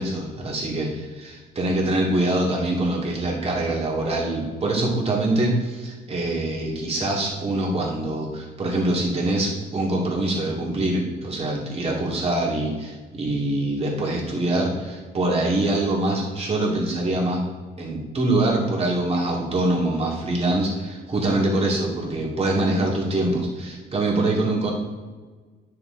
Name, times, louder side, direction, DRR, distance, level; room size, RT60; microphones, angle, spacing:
voice 1, 0.0-17.4 17.8-24.7, right 2 dB, 35° right, -2 dB, 2.3 m, -24 dB
9.4 x 6.8 x 3.9 m, 1.4 s
cardioid pair, 110°, 18 cm